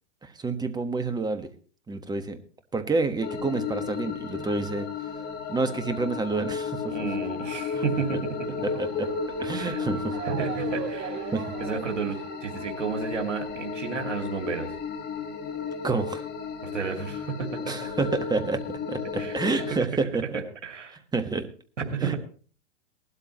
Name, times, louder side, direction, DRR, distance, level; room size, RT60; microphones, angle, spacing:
voice 1, 0.2-1.5 1.9-2.4 2.7-4.9 5.5-7.1 7.7-7.8 8.6-9.1 9.4-10.2 11.3-11.5 15.8-16.2 17.7-18.6 18.9-20.4 21.1-21.5 22.0-22.1, right 3 dB, 10° right, 9 dB, 1.3 m, -28 dB
sound 1, 3.2-19.8, left 5 dB, 25° left, 1.4 m, -34 dB
Motor vehicle (road) / Siren, 4.7-17.7 18.0-19.2 19.8-19.9 20.2-20.3, right 11 dB, 30° right, 0.9 m, -43 dB
voice 2, 6.9-8.4 9.5-9.8 10.2-11.3 11.6-14.7 16.7-17.9 19.2-19.8 20.6-21.0 21.9-22.2, right 5 dB, 85° right, 3 dB, 2.4 m, -32 dB
18.5 x 12.5 x 3.0 m, 0.41 s
hypercardioid pair, 105°, 36 cm